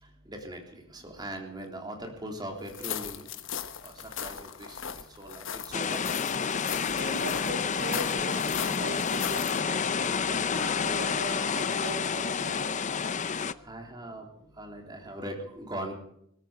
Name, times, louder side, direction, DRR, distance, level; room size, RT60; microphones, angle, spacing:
voice 1, 0.0-3.3 3.6-6.8 13.5-14.3 14.5-15.9, right 1 dB, 20° right, 2 dB, 3.5 m, -41 dB
sound 1, 2.7-9.6, left 8 dB, 65° left, 1.2 m, -38 dB
sound 2, 5.7-13.5, left 6 dB, 35° left, 0.6 m, -29 dB
voice 2, 7.0-9.9 10.2-12.6, right 2 dB, 65° right, 1 dB, 3.5 m, -39 dB
20.0 x 13.5 x 5.1 m, 0.71 s
head